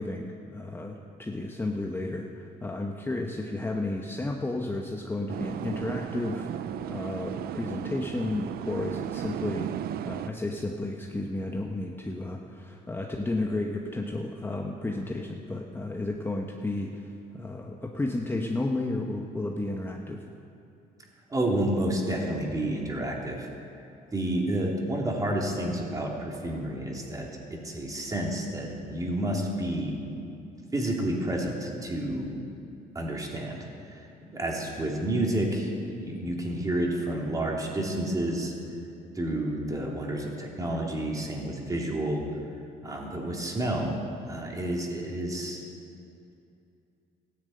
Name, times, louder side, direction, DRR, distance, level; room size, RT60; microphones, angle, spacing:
voice 1, 0.0-6.5 6.9-9.7 10.0-20.3, left 2 dB, 15° left, 1 dB, 1.0 m, -32 dB
sound 1, 5.3-10.3, right 11 dB, 65° right, 0.6 m, -35 dB
voice 2, 21.3-23.5 24.1-30.0 30.7-32.3 32.9-38.5 39.1-42.2 42.8-43.9 44.3-45.6, right 1 dB, 20° right, -1 dB, 3.1 m, -30 dB
15.0 x 10.5 x 8.7 m, 2.6 s
cardioid pair, 110°, 17 cm